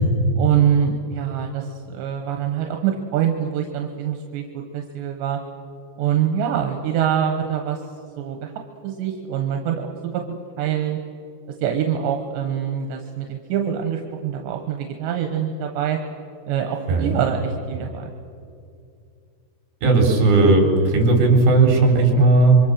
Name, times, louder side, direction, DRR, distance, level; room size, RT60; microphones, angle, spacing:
voice 1, 0.4-5.4 6.0-7.8 8.2-8.5 8.8-10.2 10.6-11.0 11.6-16.0 16.5-18.1, right 9 dB, 85° right, 3 dB, 3.6 m, -24 dB
voice 2, 16.9-17.2 19.8-22.6, right 3 dB, 60° right, 1 dB, 6.0 m, -16 dB
27.0 x 24.0 x 6.8 m, 2.4 s
omnidirectional pair, 4.9 m